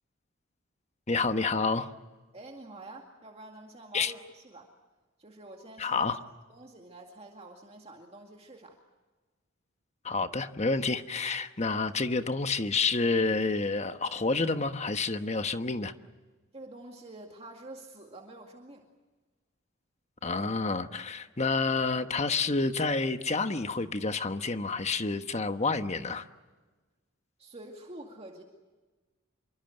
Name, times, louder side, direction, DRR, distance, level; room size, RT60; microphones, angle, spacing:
voice 1, 1.1-1.9 3.9-4.1 5.8-6.2 10.0-15.9 20.2-26.3, left 3 dB, 30° left, 9 dB, 1.2 m, -29 dB
voice 2, 2.3-4.7 5.2-6.2 6.5-8.8 16.5-18.8 27.4-28.4, right 2 dB, 30° right, 2 dB, 2.2 m, -47 dB
28.0 x 24.0 x 7.9 m, 1.3 s
head